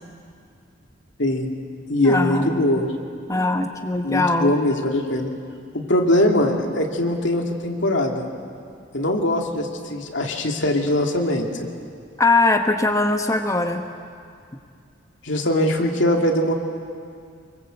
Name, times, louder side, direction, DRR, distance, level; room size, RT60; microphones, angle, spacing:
voice 1, 1.2-1.5 1.9-2.8 4.0-5.3 5.7-8.3 8.9-11.5 15.2-16.5, left 1 dB, 75° left, 2 dB, 2.5 m, -21 dB
voice 2, 2.0-2.8 3.3-4.5 12.2-13.8, left 2 dB, 15° left, 5 dB, 1.1 m, -21 dB
25.0 x 23.0 x 8.0 m, 2.4 s
head